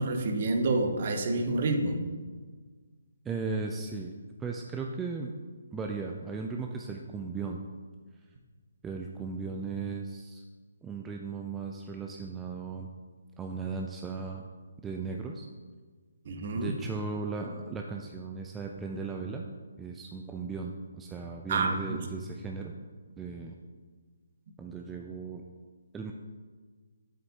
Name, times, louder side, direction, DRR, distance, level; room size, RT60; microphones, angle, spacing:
voice 1, 0.0-2.0 16.2-16.7 21.5-22.0, right 2 dB, 45° right, 4 dB, 1.0 m, -28 dB
voice 2, 3.2-4.1 4.4-5.3 5.7-7.6 8.8-10.4 10.8-12.9 13.4-14.5 14.8-15.5 16.6-19.4 19.8-22.7 23.2-23.6 24.6-25.4 25.9-26.1, right 4 dB, 10° right, 1 dB, 0.4 m, -36 dB
7.7 x 7.7 x 2.8 m, 1.5 s
figure-of-eight pair, 140°, 0 cm